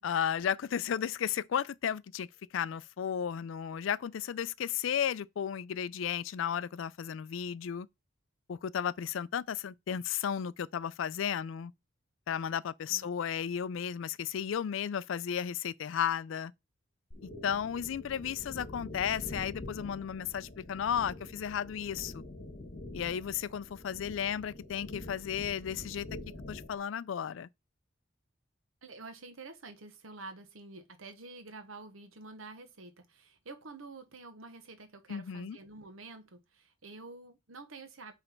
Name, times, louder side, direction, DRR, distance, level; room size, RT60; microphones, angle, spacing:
voice 1, 0.0-2.3 2.5-7.9 8.5-11.7 12.3-16.5 17.2-22.2 22.9-26.1 26.5-27.5 35.1-35.6, left 8 dB, 70° left, 0.3 m, -34 dB
sound 1, 17.1-26.8, left 2 dB, 45° left, 1.8 m, -46 dB
voice 2, 28.8-38.1, right 3 dB, 85° right, 1.1 m, -48 dB
7.9 x 3.3 x 4.4 m
head